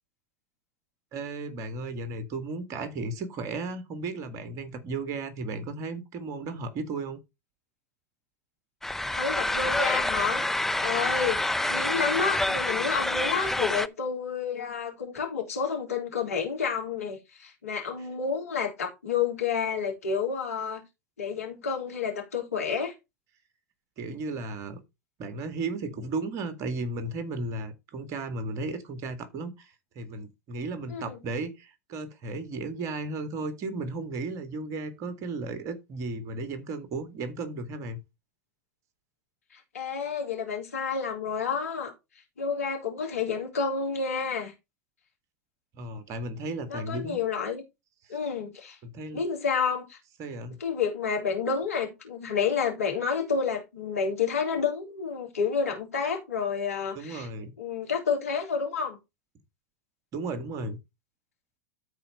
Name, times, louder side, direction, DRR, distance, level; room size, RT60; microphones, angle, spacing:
voice 1, 1.1-7.2 24.0-24.8 25.2-38.0 45.7-47.2 48.8-49.2 50.2-50.6 57.0-57.5 60.1-60.8, right 3 dB, 45° right, 1.9 m, -35 dB
sound 1, 8.8-13.9, left 2 dB, 5° left, 0.6 m, -27 dB
voice 2, 9.1-20.8 21.2-22.9 30.9-31.2 39.5-41.9 42.4-44.5 46.7-47.6 48.1-48.8 49.1-50.0 50.6-57.3 57.6-59.0, left 6 dB, 80° left, 3.6 m, -30 dB
13.0 x 4.6 x 4.1 m
hypercardioid pair, 85°, 8 cm